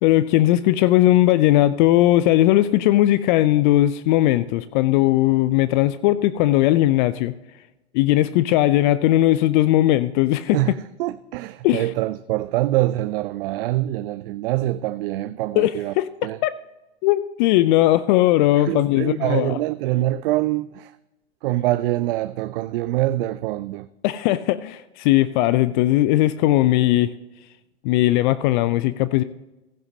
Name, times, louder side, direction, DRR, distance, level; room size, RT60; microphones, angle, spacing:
voice 1, 0.0-7.3 7.9-10.6 11.6-11.9 15.6-16.5 17.0-19.6 24.0-27.1 27.8-29.2, left 15 dB, 45° left, 0.4 m, -18 dB
voice 2, 10.5-15.9 16.2-16.4 18.6-20.9 21.4-23.9, right 16 dB, 55° right, 0.4 m, -24 dB
15.0 x 10.5 x 2.8 m
hypercardioid pair, 100°, 33 cm